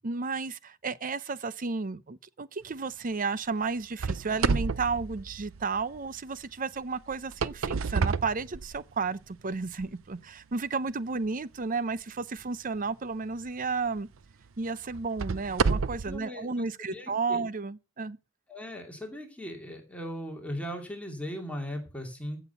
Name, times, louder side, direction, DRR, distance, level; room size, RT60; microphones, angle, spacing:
voice 1, 0.0-14.1 14.6-18.2, right 4 dB, 45° right, 0.7 m, -32 dB
sound 1, 4.0-6.0 7.1-9.1 9.7-9.8 10.5-10.6 13.2-13.4 14.0-14.1 14.9-16.2, right 5 dB, 85° right, 0.6 m, -30 dB
voice 2, 16.1-17.5 18.5-22.4, equal, 5° left, 2.6 m, -38 dB
15.5 x 6.1 x 6.8 m
head